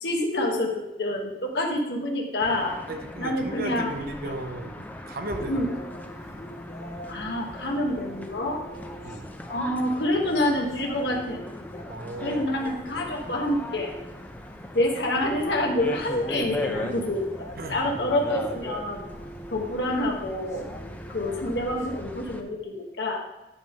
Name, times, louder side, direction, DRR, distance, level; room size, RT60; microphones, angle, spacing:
voice 1, 0.0-2.8 3.2-4.0 5.5-5.7 7.1-8.6 9.5-11.4 12.2-13.9 14.7-19.0 19.5-20.7 21.1-23.2, left 1 dB, 80° left, 0 dB, 1.3 m, -27 dB
sound 1, 2.4-22.4, left 1 dB, 10° left, 0.5 m, -39 dB
voice 2, 2.9-4.8 5.1-5.7 9.0-9.3 11.9-12.5 16.5-17.0 17.6-18.1, right 1 dB, 55° right, 5 dB, 0.9 m, -35 dB
sound 2, 5.3-22.0, equal, 40° left, 1.5 m, -45 dB
10.0 x 3.6 x 5.3 m, 0.98 s
head